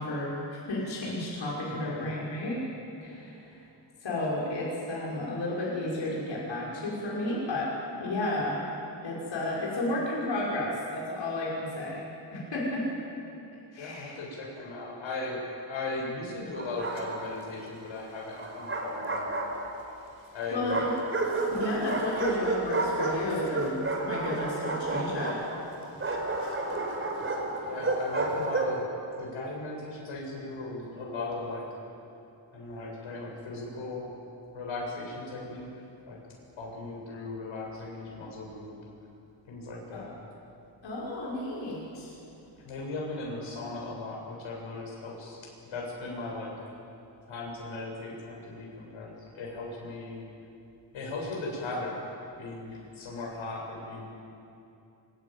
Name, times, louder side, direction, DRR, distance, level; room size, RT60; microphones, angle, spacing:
voice 1, 0.0-2.6 3.0-3.7 4.0-7.7 8.0-8.6 9.0-12.0 12.3-12.9 13.7-14.2 20.5-20.9 21.5-25.4 39.9-40.1 40.8-42.2, left 1 dB, 70° left, -5 dB, 6.4 m, -32 dB
voice 2, 1.7-2.1 13.8-15.4 15.7-19.3 20.3-20.7 27.6-28.8 29.2-31.6 32.5-34.1 34.5-35.8 36.1-36.2 36.6-38.7 39.5-40.1 42.6-46.5 47.3-50.2 50.9-52.0 52.4-54.1, left 2 dB, 90° left, -2 dB, 7.7 m, -37 dB
Bark, 16.6-17.5 18.4-20.0 20.7-28.8, right 2 dB, 25° right, 4.4 m, -31 dB
25.0 x 22.0 x 9.3 m, 2.8 s
wide cardioid pair, 135°, 46 cm